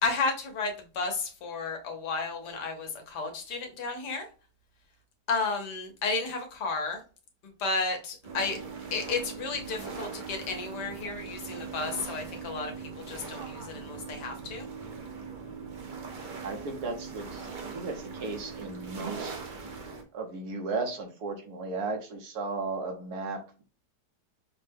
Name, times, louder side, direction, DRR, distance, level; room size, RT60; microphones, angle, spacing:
voice 1, 0.0-4.3 5.3-7.0 7.6-8.6 8.9-12.7 13.1-14.7, left 4 dB, 80° left, 4 dB, 1.5 m, -32 dB
sound 1, 8.2-20.0, right 5 dB, 50° right, 0.5 m, -40 dB
voice 2, 16.4-19.4 20.1-23.6, right 3 dB, 70° right, 4 dB, 1.3 m, -35 dB
5.6 x 2.1 x 3.4 m, 0.36 s
omnidirectional pair, 1.8 m